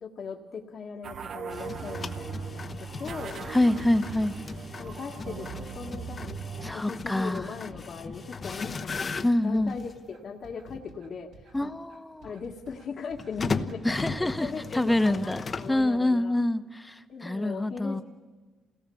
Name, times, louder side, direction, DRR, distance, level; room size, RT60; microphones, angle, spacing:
voice 1, 0.0-3.5 4.8-6.4 6.7-11.3 11.6-11.7 12.2-16.4 17.1-18.0, left 5 dB, 55° left, 0 dB, 1.7 m, -39 dB
sound 1, 1.0-6.7, right 7 dB, 55° right, 0.7 m, -39 dB
sound 2, 1.5-10.0 10.7-10.8 13.2-15.8, left 4 dB, 40° left, 1.0 m, -37 dB
voice 2, 3.5-4.3 6.6-7.5 9.2-9.8 11.5-12.3 13.8-15.4 15.7-18.0, left 1 dB, 10° left, 10 dB, 1.1 m, -26 dB
sound 3, 8.8-15.9, right 2 dB, 85° right, 3.5 m, -53 dB
27.5 x 18.0 x 7.1 m, 1.4 s
cardioid pair, 90°, 0 cm